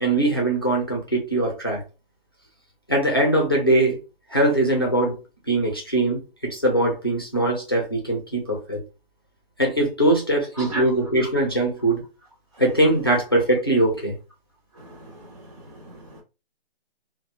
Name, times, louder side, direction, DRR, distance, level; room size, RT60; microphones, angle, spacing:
voice 1, 0.0-1.8 2.9-4.0 4.3-5.2 5.5-8.8 9.6-12.0 12.6-14.2, right 1 dB, 25° left, 0.4 m, -21 dB
voice 2, 14.8-16.2, right 1 dB, 35° right, 0.6 m, -36 dB
2.3 x 2.0 x 2.8 m
hypercardioid pair, 170°, 30 cm